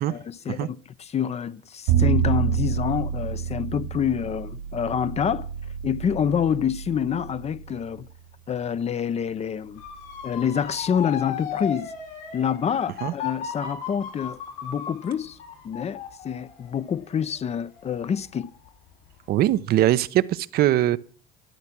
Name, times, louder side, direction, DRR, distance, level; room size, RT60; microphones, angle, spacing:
voice 1, 0.1-5.5 5.8-8.1 8.5-9.8 10.2-11.9 12.3-15.4 15.6-18.5, left 8 dB, 35° left, 0.7 m, -27 dB
Bowed string instrument, 1.9-8.1, right 9 dB, 85° right, 3.1 m, -27 dB
Motor vehicle (road) / Siren, 9.8-18.7 19.1-19.5, left 7 dB, 75° left, 4.3 m, -36 dB
voice 2, 19.3-21.0, right 13 dB, 60° right, 0.8 m, -21 dB
13.5 x 10.5 x 6.0 m
supercardioid pair, 80°, 18 cm